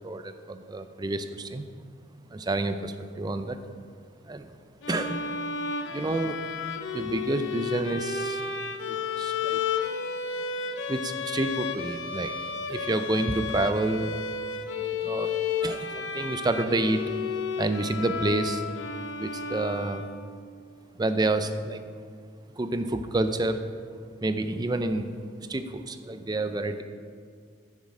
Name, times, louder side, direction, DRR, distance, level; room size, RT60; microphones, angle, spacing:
voice 1, 0.0-1.7 2.3-3.6 4.2-4.5 4.9-5.2 5.9-6.4 6.9-8.4 8.8-9.6 10.9-12.4 12.7-14.2 15.0-15.4 15.6-17.1 17.6-18.6 19.2-20.1 21.0-21.8 22.6-23.6 24.2-25.1 25.5-26.8, right 2 dB, 20° right, 9 dB, 0.5 m, -29 dB
sound 1, 4.8-20.5, left 5 dB, 75° left, 0.8 m, -32 dB
9.6 x 7.3 x 4.9 m, 2.1 s
head